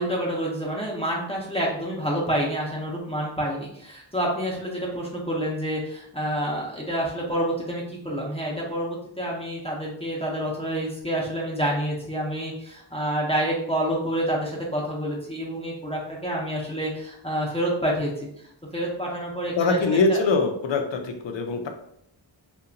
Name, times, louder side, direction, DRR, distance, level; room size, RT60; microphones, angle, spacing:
voice 1, 0.0-18.3 18.7-20.2, right 1 dB, 15° left, -4 dB, 0.5 m, -28 dB
voice 2, 19.6-21.7, left 3 dB, 70° left, 4 dB, 0.5 m, -23 dB
2.9 x 2.2 x 2.5 m, 0.72 s
wide cardioid pair, 110°, 46 cm